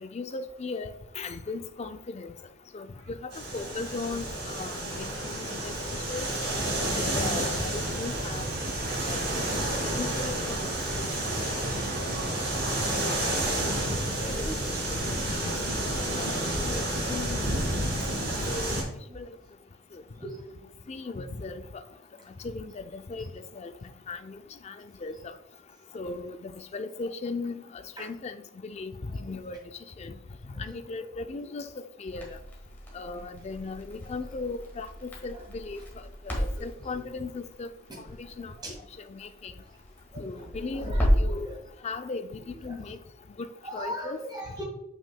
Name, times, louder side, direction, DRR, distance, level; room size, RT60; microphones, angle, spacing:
voice 1, 0.0-2.3 2.7-3.2 3.5-5.7 6.1-6.3 7.1-8.5 8.9-10.6 11.0-11.1 12.4-12.5 13.4-13.8 14.2-14.4 15.3-15.5 16.2-16.3 16.6-17.4 18.5-18.7 19.1-19.3 19.9-20.0 20.9-21.8 22.4-23.3 23.6-23.7 24.1-24.4 24.6-24.8 25.0-25.3 25.9-28.9 29.2-29.6 30.0-30.2 30.5-32.4 32.9-35.8 36.3-37.7 38.2-38.5 39.1-39.5 40.2-41.5 41.8-43.0 43.4-43.5 43.7-44.2, left 3 dB, 30° left, 0.3 m, -37 dB
sound 1, 3.3-18.8, right 1 dB, 55° right, 2.2 m, -30 dB
sound 2, 7.8-13.7, right 3 dB, 40° right, 0.5 m, -40 dB
voice 2, 13.9-14.5 15.4-15.5 17.9-18.3 20.1-20.6 28.0-28.1 31.0-31.1 36.4-36.6 38.6-38.7 40.1-41.5 43.6-44.6, equal, 20° right, 1.9 m, -40 dB
Crackle, 32.1-41.4, equal, 10° left, 1.5 m, -32 dB
7.5 x 6.0 x 2.2 m
head